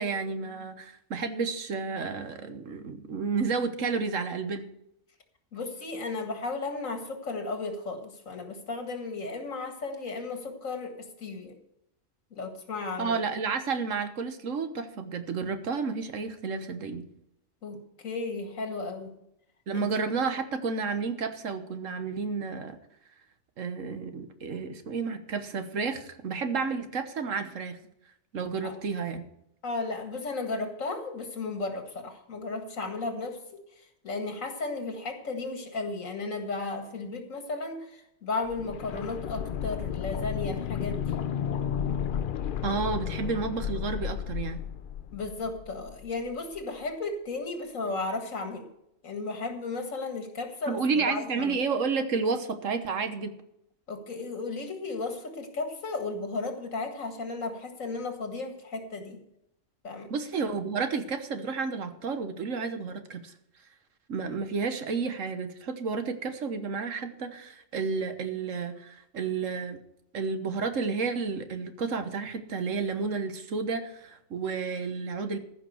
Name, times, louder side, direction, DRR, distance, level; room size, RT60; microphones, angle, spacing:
voice 1, 0.0-4.7 13.0-17.1 19.7-22.8 23.6-27.8 28.3-29.2 42.6-44.6 50.7-53.3 60.1-63.3 64.1-69.8 70.1-75.4, right 5 dB, 75° right, 8 dB, 1.6 m, -31 dB
voice 2, 5.5-11.6 12.3-13.2 17.6-19.2 19.7-19.9 28.6-28.8 29.6-33.6 34.0-41.2 45.1-48.7 49.0-51.6 53.9-59.2 59.8-60.1, left 3 dB, 80° left, 5 dB, 2.3 m, -34 dB
sound 1, 38.5-46.3 46.5-46.6, left 9 dB, 60° left, 0.6 m, -33 dB
14.5 x 5.9 x 7.8 m, 0.80 s
omnidirectional pair, 1.3 m